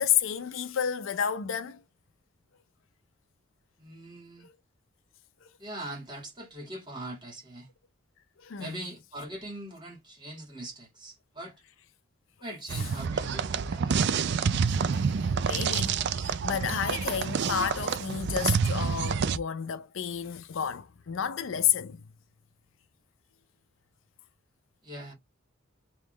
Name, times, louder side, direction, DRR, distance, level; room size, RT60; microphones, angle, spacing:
voice 1, 0.0-1.8 4.4-4.5 5.4-5.5 8.4-8.8 15.2-22.0, left 9 dB, 70° left, 0.5 m, -31 dB
voice 2, 3.8-4.5 5.6-7.7 8.6-11.5 12.4-14.0 24.8-25.1, right 1 dB, 25° right, 2.1 m, -41 dB
sound 1, 12.7-19.4, right 6 dB, 55° right, 0.4 m, -28 dB
3.7 x 3.1 x 3.3 m
head